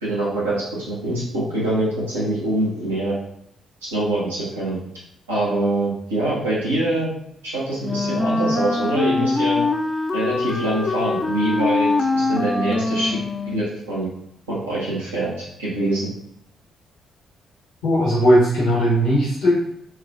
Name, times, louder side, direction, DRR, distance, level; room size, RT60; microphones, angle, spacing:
voice 1, 0.0-3.2 3.8-4.8 5.3-7.1 7.4-9.6 10.1-13.2 13.4-14.1 14.5-16.1, right 1 dB, 80° right, -7 dB, 0.7 m, -24 dB
Wind instrument woodwind instrument, 7.8-13.7, left 3 dB, 20° left, 0.4 m, -23 dB
voice 2, 17.8-19.6, equal, 65° left, -6 dB, 0.9 m, -17 dB
4.4 x 2.3 x 2.4 m, 0.75 s
figure-of-eight pair, 40°, 0 cm